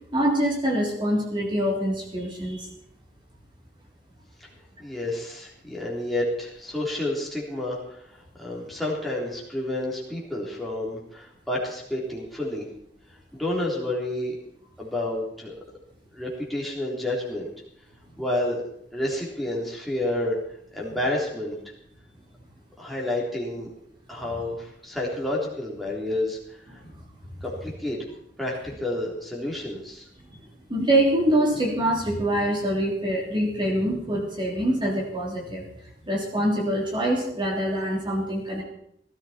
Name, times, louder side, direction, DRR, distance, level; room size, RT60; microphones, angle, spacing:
voice 1, 0.1-2.7 26.8-26.9 30.7-35.6 36.1-38.6, right 1 dB, 25° right, -2 dB, 3.2 m, -24 dB
voice 2, 4.8-12.7 13.3-14.4 14.8-15.5 16.1-17.5 18.2-18.6 18.9-20.4 20.7-21.6 22.8-23.7 24.1-26.8 27.4-28.0 28.4-30.1, left 1 dB, ahead, -4 dB, 3.6 m, -30 dB
18.0 x 13.5 x 4.4 m, 0.73 s
head